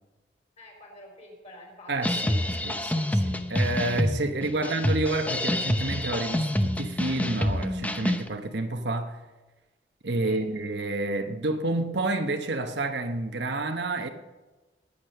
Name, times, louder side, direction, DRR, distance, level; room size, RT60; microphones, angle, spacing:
voice 1, 0.6-2.5 4.3-4.7 10.2-10.4, left 1 dB, 40° left, 4.5 m, -47 dB
voice 2, 1.9-9.2 10.0-14.1, right 2 dB, 70° right, 1.1 m, -29 dB
sound 1, 2.0-8.3, left 1 dB, 10° left, 0.7 m, -27 dB
20.0 x 8.3 x 5.8 m
head